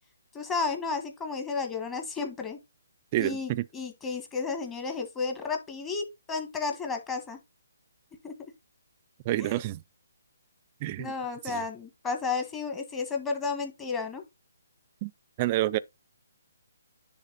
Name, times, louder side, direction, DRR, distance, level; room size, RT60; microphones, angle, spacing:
voice 1, 0.3-2.6 3.2-7.4 8.2-8.3 9.4-9.6 11.0-14.2, left 4 dB, 15° left, 1.5 m, -32 dB
voice 2, 3.1-3.7 9.3-9.8 10.8-11.1 11.4-11.6 15.0-15.1 15.4-15.8, right 15 dB, 30° right, 0.4 m, -28 dB
9.9 x 3.7 x 4.0 m
hypercardioid pair, 150°, 0 cm